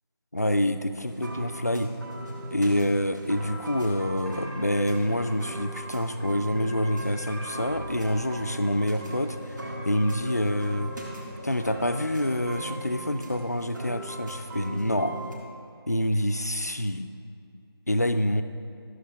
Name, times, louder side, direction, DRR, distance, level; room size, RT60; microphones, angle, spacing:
voice 1, 0.3-1.9 2.5-9.4 9.6-10.9 11.4-15.2 15.9-17.1 17.9-18.4, left 1 dB, 40° left, 9 dB, 0.4 m, -27 dB
sound 1, 1.0-15.3, right 1 dB, 45° right, 1.7 m, -39 dB
sound 2, 4.3-5.6 6.1-6.2 6.5-7.8 8.1-13.3, left 1 dB, 20° right, 0.6 m, -43 dB
13.0 x 6.3 x 4.9 m, 2.5 s
figure-of-eight pair, 180°, 14 cm